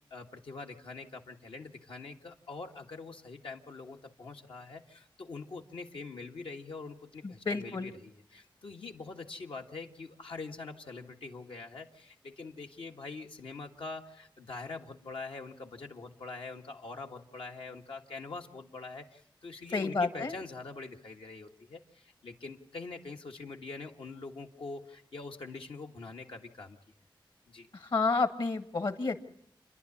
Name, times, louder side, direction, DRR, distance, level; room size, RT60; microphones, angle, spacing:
voice 1, 0.1-26.8 27.5-27.7, left 3 dB, 85° left, 2 dB, 1.8 m, -44 dB
voice 2, 7.2-7.9 19.7-20.4 27.7-29.2, left 4 dB, 60° left, 9 dB, 1.8 m, -30 dB
28.5 x 11.0 x 9.9 m, 0.76 s
wide cardioid pair, 65°, 9 cm